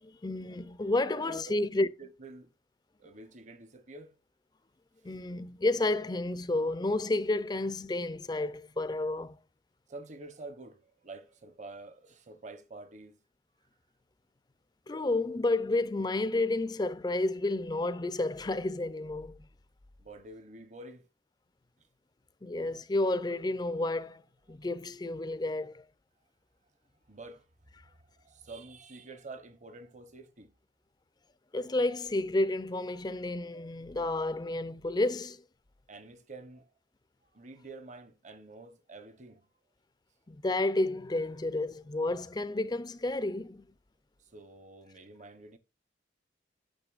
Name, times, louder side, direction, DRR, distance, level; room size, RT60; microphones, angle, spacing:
voice 1, 0.0-1.9 5.0-9.3 14.9-19.5 22.4-24.2 24.5-25.8 31.5-35.4 40.3-43.6, left 2 dB, 25° left, 0.5 m, -31 dB
voice 2, 1.1-1.6 2.0-2.5 3.0-4.2 9.9-13.2 20.0-21.1 27.1-27.5 27.8-30.5 35.9-36.7 37.3-39.5 44.3-45.6, right 2 dB, 40° right, 1.0 m, -48 dB
9.0 x 6.6 x 2.5 m
head